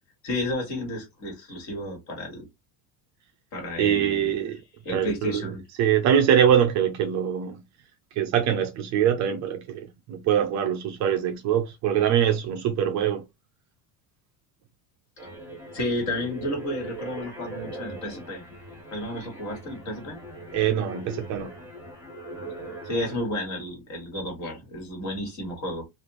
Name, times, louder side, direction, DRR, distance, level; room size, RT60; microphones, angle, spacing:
voice 1, 0.2-2.5 3.5-4.3 4.9-5.6 15.7-18.4 18.9-20.2 22.8-25.8, left 1 dB, 40° left, 1.7 m, -32 dB
voice 2, 3.8-4.6 4.9-5.5 5.8-7.6 8.1-13.2 20.5-21.5, right 9 dB, 40° right, 0.5 m, -23 dB
sound 1, 15.2-23.2, right 1 dB, 5° right, 1.3 m, -40 dB
3.3 x 2.5 x 2.9 m
cardioid pair, 160°, 44 cm